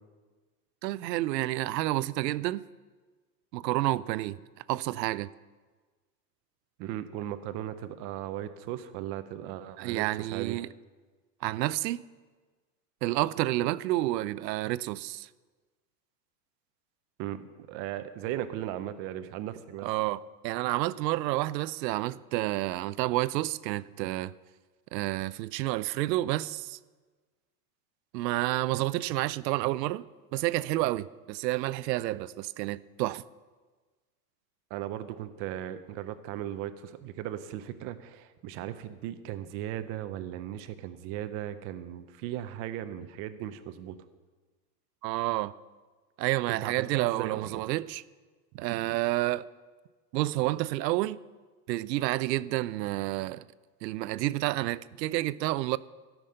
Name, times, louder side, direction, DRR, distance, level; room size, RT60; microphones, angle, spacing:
voice 1, 0.8-2.6 3.5-4.4 4.7-5.3 9.8-10.7 11.4-12.1 13.0-15.3 19.8-24.3 24.9-26.8 28.1-30.0 30.3-33.2 45.0-45.5 46.2-48.0 48.6-49.5 50.1-51.2 51.7-53.5 53.8-55.8, right 17 dB, 85° right, 0.6 m, -29 dB
voice 2, 6.8-10.6 17.2-19.9 34.7-44.0 46.5-47.5, right 12 dB, 30° right, 0.5 m, -37 dB
14.5 x 6.1 x 6.5 m
supercardioid pair, 150°, 49 cm